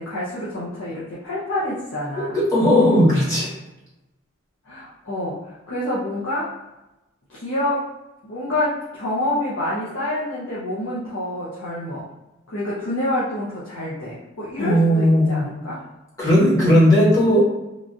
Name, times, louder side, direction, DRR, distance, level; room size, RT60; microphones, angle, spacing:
voice 1, 0.0-2.4 4.7-6.5 7.3-7.9 8.2-12.1 12.5-15.8, left 1 dB, 65° left, -8 dB, 0.6 m, -27 dB
voice 2, 2.2-3.5 14.6-15.4 16.2-17.4, equal, 15° left, -8 dB, 1.0 m, -16 dB
3.0 x 2.3 x 2.5 m, 0.97 s
head